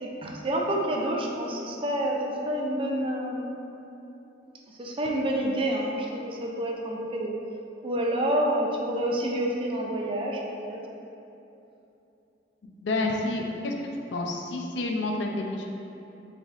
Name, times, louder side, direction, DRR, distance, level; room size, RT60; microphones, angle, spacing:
voice 1, 0.0-3.5 4.7-7.3 7.8-10.8, right 1 dB, 30° right, -1 dB, 0.4 m, -28 dB
voice 2, 12.7-13.7 14.1-15.7, left 2 dB, 70° left, 1 dB, 0.5 m, -29 dB
3.5 x 3.3 x 3.9 m, 2.9 s
head